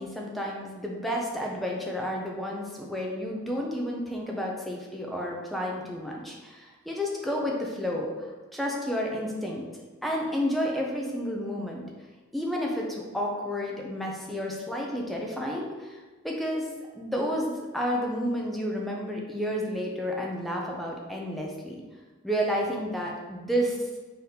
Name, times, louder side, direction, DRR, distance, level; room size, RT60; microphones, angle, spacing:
voice 1, 0.0-8.3 8.5-9.7 10.0-11.8 12.3-16.0 16.2-16.7 16.9-21.8 22.2-23.9, equal, ahead, -2 dB, 0.5 m, -31 dB
3.9 x 2.8 x 3.4 m, 1.3 s
head